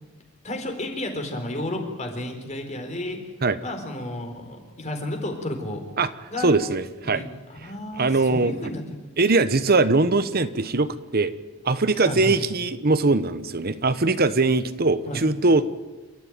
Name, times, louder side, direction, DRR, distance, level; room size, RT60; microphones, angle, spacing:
voice 1, 0.4-3.2 3.6-5.8 6.3-6.5 7.0-7.3 7.6-8.8 12.0-12.4 15.1-15.2, left 1 dB, 35° left, 4 dB, 4.1 m, -32 dB
voice 2, 6.4-7.3 7.6-8.7 9.2-11.3 11.6-15.6, right 3 dB, 45° right, 13 dB, 1.0 m, -21 dB
28.0 x 14.0 x 9.4 m, 1.2 s
head